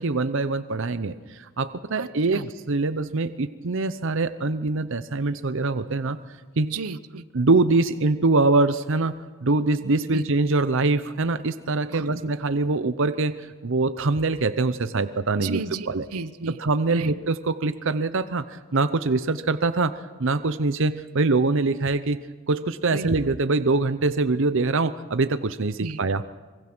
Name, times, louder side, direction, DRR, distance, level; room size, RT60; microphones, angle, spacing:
voice 1, 0.0-6.7 7.3-9.1 9.4-16.1 16.6-26.2, right 3 dB, 60° right, 12 dB, 0.7 m, -24 dB
voice 2, 2.0-2.5 6.7-7.2 10.1-10.2 11.9-12.2 15.4-16.6 16.9-17.1 22.9-23.1 25.8-26.0, right 4 dB, 85° right, 13 dB, 0.9 m, -34 dB
25.0 x 23.0 x 6.1 m, 1.3 s
head